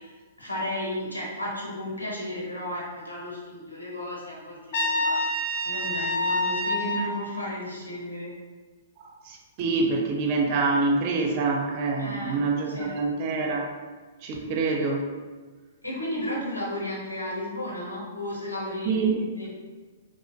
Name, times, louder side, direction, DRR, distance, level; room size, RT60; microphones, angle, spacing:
voice 1, 0.0-5.2 5.6-8.3 12.0-12.4 12.7-12.9 14.3-14.4 15.8-19.0 19.3-19.5, left 1 dB, 85° left, -4 dB, 0.7 m, -34 dB
Trumpet, 4.7-7.0, left 1 dB, 50° left, 0.5 m, -26 dB
voice 2, 9.0-13.7 14.2-15.1 18.9-19.2, right 3 dB, 40° right, 1 dB, 0.4 m, -26 dB
2.4 x 2.0 x 2.6 m, 1.4 s
figure-of-eight pair, 110°, 0 cm